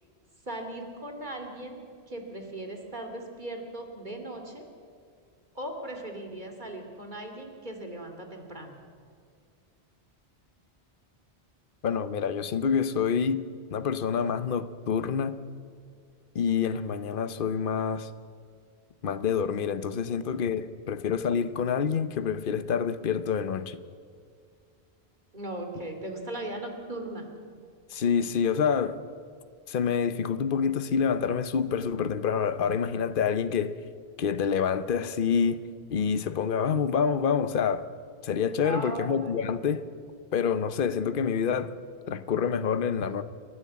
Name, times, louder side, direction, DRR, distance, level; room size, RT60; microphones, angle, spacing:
voice 1, 0.4-1.8 2.1-4.6 5.5-8.8 25.3-27.2 38.6-39.3, right 1 dB, 45° right, 4 dB, 2.8 m, -38 dB
voice 2, 11.8-13.5 13.7-15.4 16.3-18.1 19.0-23.8 27.9-29.0 29.7-33.8 34.2-35.6 35.9-37.9 38.2-39.9 40.3-41.8 42.1-43.2, left 7 dB, 55° left, 13 dB, 1.0 m, -27 dB
29.5 x 11.0 x 8.5 m, 2.2 s
omnidirectional pair, 1.1 m